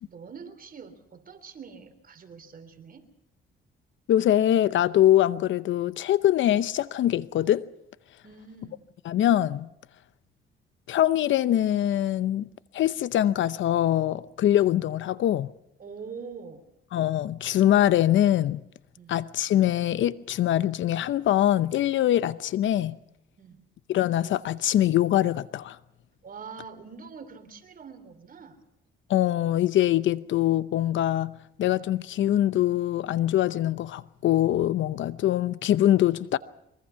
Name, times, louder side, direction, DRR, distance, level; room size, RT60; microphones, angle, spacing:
voice 1, 0.0-3.1 8.2-8.8 15.8-16.6 18.9-19.1 23.4-23.6 26.2-28.6, right 5 dB, 45° right, 3.3 m, -44 dB
voice 2, 4.1-7.6 9.1-9.7 10.9-12.5 12.7-15.5 16.9-18.6 19.1-23.0 23.9-25.8 29.1-31.3 31.6-36.4, left 12 dB, 70° left, 0.8 m, -23 dB
23.5 x 23.5 x 5.8 m
cardioid pair, 90°, 20 cm